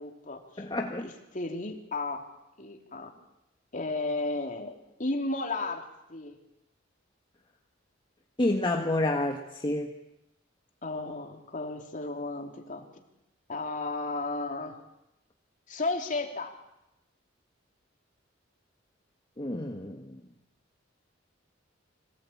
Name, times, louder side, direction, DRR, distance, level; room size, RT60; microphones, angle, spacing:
voice 1, 0.0-0.6 1.0-2.2 2.6-3.1 3.7-5.8 6.1-6.3 10.8-13.0 13.5-14.8 15.7-16.5, left 2 dB, 40° left, 3 dB, 3.1 m, -34 dB
voice 2, 0.6-1.1 8.4-9.9 19.4-20.1, left 1 dB, 25° left, 2 dB, 1.6 m, -29 dB
25.5 x 19.5 x 8.7 m, 0.88 s
head